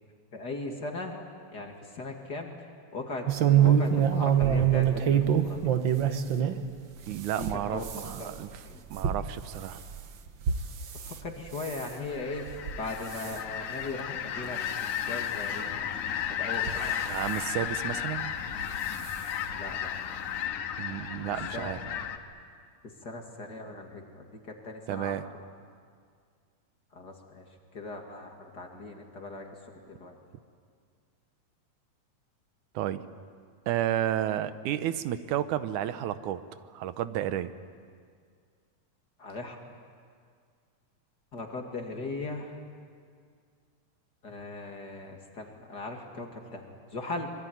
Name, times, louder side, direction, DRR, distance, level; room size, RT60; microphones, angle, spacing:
voice 1, 0.3-1.2 1.5-2.5 2.9-5.8 7.4-8.3 8.6-8.8 10.9-12.4 12.8-15.9 16.4-17.0 19.5-19.9 21.5-21.7 23.0-25.2 26.9-27.4 27.7-30.2 39.2-39.6 41.3-42.6 44.2-46.6 46.9-47.3, left 2 dB, 35° left, 2 dB, 2.7 m, -38 dB
sound 1, 3.3-6.6 7.0-11.2 11.6-11.9 12.5-12.8 13.1-13.4 14.0-14.1 14.4-14.5 15.7-15.8 16.5-17.4 18.5-18.7 19.1-19.2 19.5-19.6, right 9 dB, 55° right, 1.4 m, -26 dB
voice 2, 7.1-8.6 8.9-9.8 17.1-18.3 20.8-21.8 24.9-25.3 32.8-33.0 33.7-36.4 36.7-37.5, right 12 dB, 90° right, 12 dB, 2.4 m, -31 dB
sound 2, 11.8-22.2, left 9 dB, 85° left, 2.8 m, -34 dB
25.5 x 23.5 x 9.5 m, 2.1 s
omnidirectional pair, 3.4 m